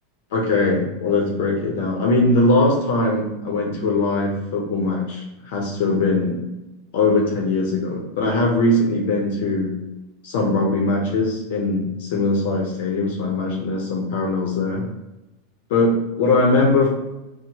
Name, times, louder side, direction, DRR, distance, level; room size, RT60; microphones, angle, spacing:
voice 1, 0.3-6.4 6.9-9.8 10.2-14.9 15.7-16.9, left 2 dB, 70° left, 0 dB, 0.6 m, -21 dB
4.4 x 2.1 x 2.8 m, 1.0 s
supercardioid pair, 150°, 0 cm